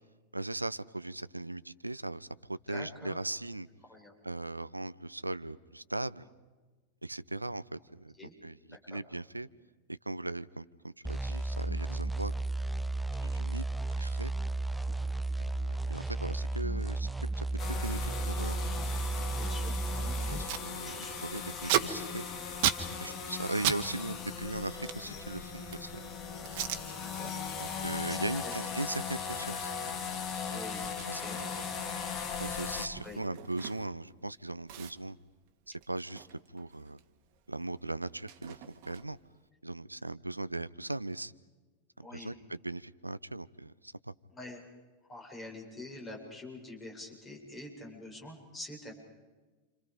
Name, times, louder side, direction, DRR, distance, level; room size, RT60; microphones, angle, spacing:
voice 1, 0.3-3.7 4.2-6.2 7.0-8.1 8.4-8.6 8.9-9.5 10.1-12.3 13.2-14.3 15.4-17.1 17.3-18.6 20.3-20.9 21.2-22.2 23.0-26.0 27.6-29.7 30.4-30.6 31.0-31.6 32.4-35.2 35.9-37.0 37.5-39.2 39.6-41.3 42.0-44.1, right 2 dB, 85° right, 18 dB, 0.8 m, -39 dB
voice 2, 2.7-3.2 3.8-4.1 8.2-8.3 8.7-9.0 19.3-20.5 20.8-21.3 21.6-21.9 23.0-23.2 26.9-27.3 28.1-28.5 30.5-30.8 31.1-31.4 33.0-33.2 42.0-42.3 44.3-44.6 45.1-48.9, left 2 dB, 15° left, 1 dB, 7.7 m, -46 dB
sound 1, 11.0-20.5, right 2 dB, ahead, 0.7 m, -33 dB
sound 2, 17.6-32.9, left 6 dB, 35° left, 3.2 m, -38 dB
Packing tape duct tape, 19.9-20.0 20.2-20.7 21.0-23.8 24.1-25.9 26.4-26.8 27.3-27.5 27.9-34.1 34.3-34.4 34.7-37.1 37.3-39.3, right 10 dB, 45° right, 2.1 m, -37 dB
29.5 x 29.0 x 5.2 m, 1.3 s
figure-of-eight pair, 90°, 0 cm